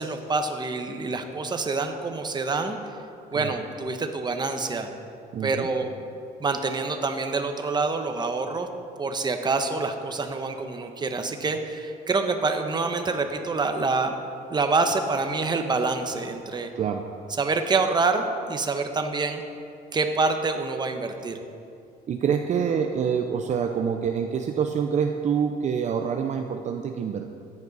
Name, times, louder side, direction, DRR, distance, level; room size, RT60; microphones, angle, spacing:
voice 1, 0.0-2.8 3.3-4.9 5.4-5.9 6.4-8.7 9.0-14.2 14.5-16.7 17.4-19.4 19.9-21.4, right 3 dB, 25° right, 6 dB, 1.0 m, -26 dB
voice 2, 5.3-5.7 16.7-17.0 22.1-27.3, right 7 dB, 45° right, 5 dB, 0.6 m, -26 dB
14.0 x 9.7 x 4.1 m, 2.5 s
cardioid pair, 110°, 17 cm